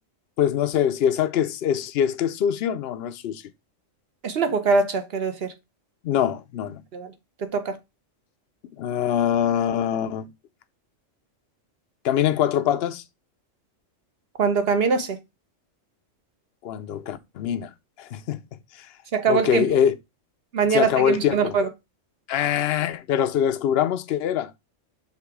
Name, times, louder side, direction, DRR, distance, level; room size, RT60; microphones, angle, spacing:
voice 1, 0.4-3.4 6.0-6.8 8.7-10.3 12.0-13.0 16.6-17.7 18.0-18.4 18.7-18.9 19.3-20.0 20.7-21.6 22.3-24.5, left 9 dB, 60° left, 0.8 m, -23 dB
voice 2, 4.2-5.5 6.9-7.1 7.4-7.8 14.4-15.2 19.1-19.6 20.5-21.7, right 5 dB, 55° right, 1.1 m, -23 dB
5.9 x 3.7 x 4.7 m
omnidirectional pair, 1.3 m